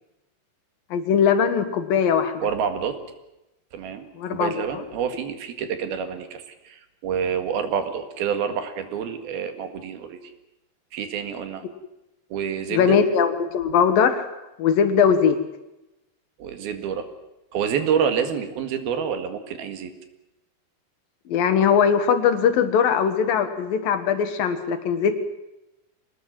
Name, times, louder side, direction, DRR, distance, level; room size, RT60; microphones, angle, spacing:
voice 1, 0.9-2.4 4.2-4.8 12.7-14.3 14.6-15.4 21.3-25.2, left 7 dB, 65° left, 9 dB, 3.3 m, -20 dB
voice 2, 2.4-3.0 3.7-10.2 10.9-11.7 12.3-13.0 16.4-17.1 17.5-19.9, right 7 dB, 75° right, 8 dB, 3.7 m, -28 dB
25.5 x 19.5 x 7.6 m, 0.94 s
omnidirectional pair, 4.6 m